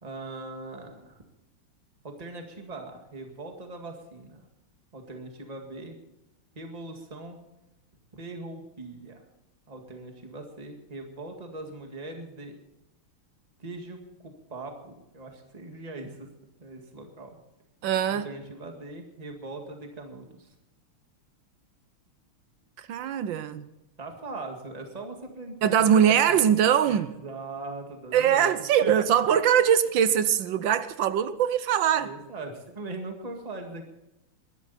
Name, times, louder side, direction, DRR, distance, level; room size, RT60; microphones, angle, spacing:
voice 1, 0.0-1.2 2.0-4.4 4.9-6.0 6.6-7.4 8.1-9.2 9.7-12.5 13.6-16.3 16.6-17.4 18.1-20.6 24.0-26.2 26.8-28.9 32.0-33.9, right 2 dB, 20° right, 1.9 m, -40 dB
voice 2, 17.8-18.3 22.8-23.7 25.6-27.1 28.1-32.1, right 9 dB, 70° right, 1.4 m, -22 dB
21.0 x 12.5 x 4.3 m
omnidirectional pair, 2.3 m